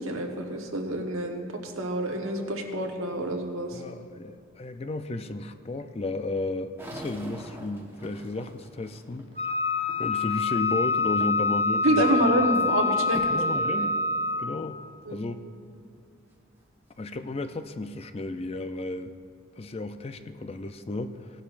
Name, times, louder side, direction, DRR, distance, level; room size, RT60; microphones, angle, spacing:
voice 1, 0.0-3.8 11.8-13.4 13.8-13.9 15.1-15.3, right 1 dB, 85° right, 2 dB, 1.3 m, -27 dB
voice 2, 3.7-9.3 10.0-12.1 13.3-14.0 14.4-14.8 15.1-15.4 17.0-19.2 19.6-21.3, left 2 dB, 30° left, 9 dB, 0.4 m, -33 dB
sound 1, 6.8-10.6 11.1-11.6 12.0-12.7 13.1-13.5 14.1-14.2 14.9-15.0 17.5-17.6 18.1-18.7, equal, 10° right, 1.1 m, -44 dB
Wind instrument woodwind instrument, 9.4-14.6, left 4 dB, 45° right, 1.6 m, -26 dB
18.0 x 11.5 x 2.5 m, 2.5 s
head